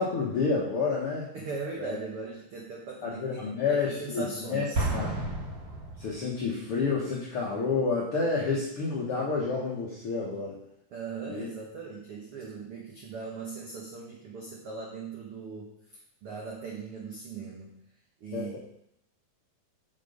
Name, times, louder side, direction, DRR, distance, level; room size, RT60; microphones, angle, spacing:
voice 1, 0.0-1.3 1.8-2.0 3.0-4.7 4.9-5.1 6.0-10.6 11.3-11.5 18.3-18.6, left 4 dB, 70° left, -5 dB, 1.3 m, -29 dB
voice 2, 1.3-4.8 10.9-15.7 16.2-17.7 18.2-18.6, right 4 dB, 75° right, -2 dB, 1.3 m, -39 dB
Explosion, 4.7-6.6, right 2 dB, 45° right, 1.2 m, -32 dB
6.6 x 6.0 x 5.2 m, 0.75 s
omnidirectional pair, 4.2 m